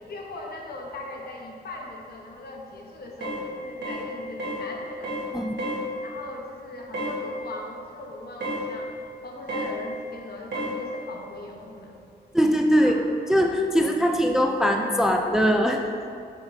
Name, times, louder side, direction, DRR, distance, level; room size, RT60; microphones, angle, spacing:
voice 1, 0.1-5.2 6.0-9.0 9.2-12.0 12.8-13.0, left 2 dB, 60° left, 0 dB, 0.9 m, -39 dB
sound 1, 3.2-3.4 3.8-4.1 4.4-4.6 5.0-5.3 5.6-5.8 6.9-7.2 8.4-8.7 9.5-9.7 10.5-10.8, right 1 dB, 90° right, 1.4 m, -30 dB
voice 2, 12.3-12.9 13.3-15.9, equal, 5° right, 3 dB, 0.3 m, -21 dB
7.1 x 6.9 x 2.6 m, 2.4 s
wide cardioid pair, 120°, 18 cm